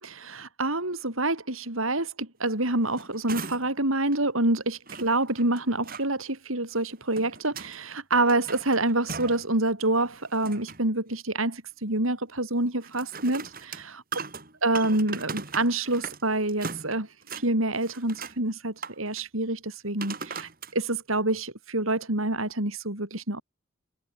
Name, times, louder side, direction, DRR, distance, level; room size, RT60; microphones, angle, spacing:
voice 1, 0.0-14.0 14.6-17.1 17.3-23.4, right 2 dB, 75° right, 5.7 m, -27 dB
sound 1, 2.7-3.8 4.1-4.2 4.9-6.1 6.8-7.8 8.1-9.5 9.9-10.9 12.8-16.2 16.5-17.5 17.8-18.4 18.8-19.2 20.0-20.7 21.3-21.4, right 4 dB, 45° right, 5.1 m, -39 dB
head